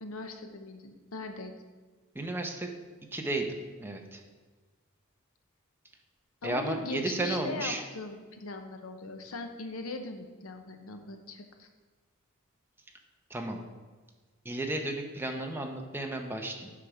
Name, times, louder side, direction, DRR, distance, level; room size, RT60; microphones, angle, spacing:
voice 1, 0.0-1.5 6.4-11.7, left 3 dB, 80° left, 6 dB, 0.9 m, -40 dB
voice 2, 2.1-2.7 3.1-4.2 6.4-7.8 13.3-13.6 14.4-16.7, right 2 dB, 10° right, 2 dB, 0.8 m, -33 dB
8.4 x 5.9 x 4.9 m, 1.3 s
head